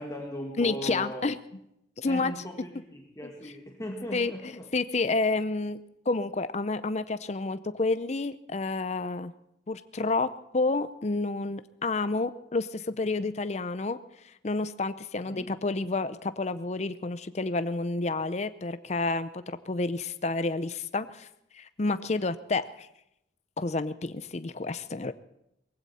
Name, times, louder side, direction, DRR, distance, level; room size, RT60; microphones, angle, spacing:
voice 1, 0.0-1.3 2.0-4.7 15.3-15.5, equal, 20° left, 0 dB, 1.6 m, -38 dB
voice 2, 0.6-1.4 2.0-2.3 4.1-5.8 6.1-9.3 9.7-14.0 14.4-21.3 21.5-22.9 23.6-25.1, left 3 dB, 40° left, 13 dB, 0.6 m, -29 dB
19.5 x 16.0 x 4.2 m, 0.81 s
head